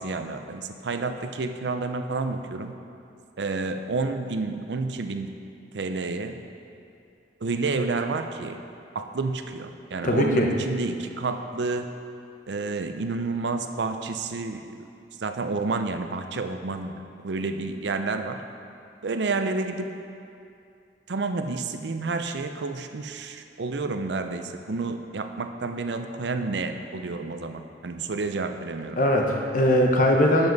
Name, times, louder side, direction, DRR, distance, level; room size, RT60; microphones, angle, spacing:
voice 1, 0.0-2.7 3.4-5.3 5.7-6.4 7.4-8.6 8.9-11.9 12.5-14.6 15.2-16.9 17.2-18.4 19.0-19.9 21.1-29.0, right 3 dB, 80° right, 7 dB, 0.5 m, -29 dB
voice 2, 10.0-10.5 29.0-30.5, left 1 dB, 50° left, 1 dB, 1.0 m, -20 dB
10.5 x 7.1 x 4.0 m, 2.5 s
head